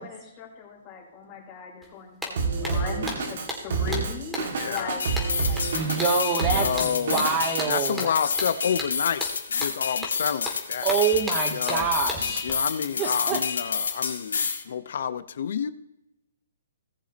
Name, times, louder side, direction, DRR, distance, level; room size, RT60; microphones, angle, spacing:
voice 1, 0.0-6.2 7.7-8.4, left 6 dB, 25° left, -3 dB, 4.1 m, -39 dB
sound 1, 1.8-1.9 2.2-12.5, left 1 dB, 5° right, 2.3 m, -36 dB
Drum kit, 2.4-7.7, right 4 dB, 55° right, 2.1 m, -29 dB
voice 2, 4.6-4.9 6.5-7.2 7.7-10.9 11.5-11.9 12.4-15.7, left 8 dB, 60° left, 13 dB, 0.8 m, -29 dB
sound 2, 5.0-14.6, left 5 dB, 85° left, 2.3 m, -29 dB
voice 3, 5.7-8.1 10.8-12.7 13.0-13.4, right 6 dB, 20° right, 4 dB, 1.1 m, -26 dB
18.5 x 7.3 x 2.9 m, 0.91 s
hypercardioid pair, 155°, 0 cm